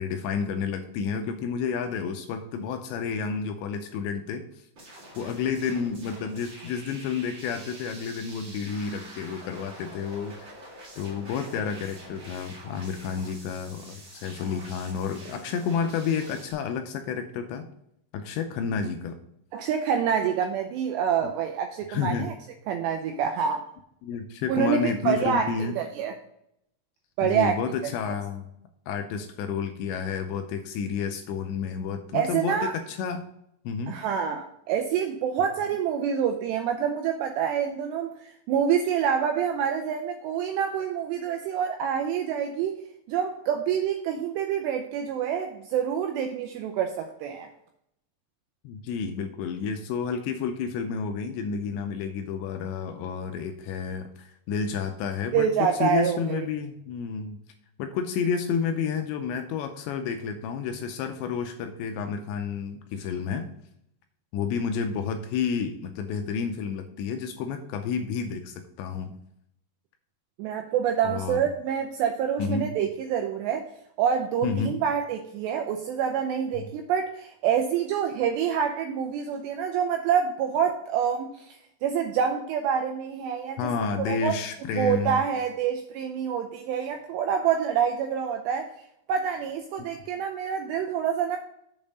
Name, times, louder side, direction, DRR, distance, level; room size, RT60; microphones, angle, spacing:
voice 1, 0.0-4.7 5.2-10.5 11.0-17.7 18.1-19.2 21.9-22.3 24.0-25.8 27.2-28.4 28.9-33.3 33.6-33.9 48.6-55.5 55.7-57.4 57.8-63.5 64.3-69.2 71.0-71.4 72.4-72.8 74.4-74.8 76.6-76.7 83.6-85.2 89.8-89.9, left 6 dB, 85° left, 6 dB, 2.6 m, -30 dB
sound 1, 4.8-16.5, right 1 dB, 40° right, 1.8 m, -46 dB
voice 2, 19.5-22.3 22.7-23.6 24.5-26.1 27.2-27.6 32.1-32.8 33.9-42.8 43.1-47.5 55.3-56.5 70.4-73.7 74.0-84.3 84.8-88.7 89.1-91.4, right 8 dB, 90° right, 5 dB, 2.5 m, -27 dB
7.1 x 5.3 x 5.3 m, 0.75 s
omnidirectional pair, 5.6 m